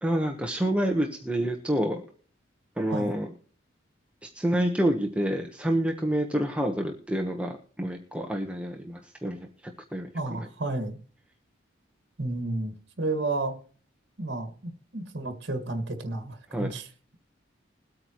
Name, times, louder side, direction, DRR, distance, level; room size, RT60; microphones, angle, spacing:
voice 1, 0.0-2.0 2.8-3.3 4.2-9.5 9.9-10.1 16.5-16.7, right 1 dB, 5° right, 2 dB, 1.1 m, -28 dB
voice 2, 10.1-11.0 12.2-13.6 14.2-16.9, right 2 dB, 60° right, 7 dB, 1.9 m, -32 dB
21.5 x 8.8 x 3.1 m, 0.43 s
head